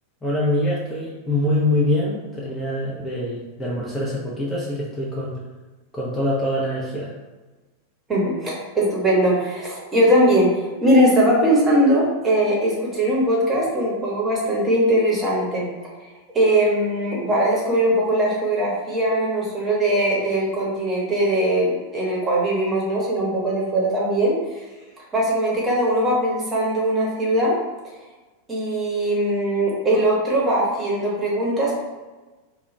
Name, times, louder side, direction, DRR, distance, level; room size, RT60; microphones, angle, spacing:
voice 1, 0.2-5.3 5.9-7.1, left 1 dB, 15° left, -5 dB, 0.5 m, -24 dB
voice 2, 8.1-15.7 16.3-24.4 25.1-27.6 28.5-31.8, right 1 dB, 20° right, -4 dB, 0.9 m, -20 dB
2.3 x 2.2 x 3.1 m, 1.2 s
figure-of-eight pair, 90°, 0 cm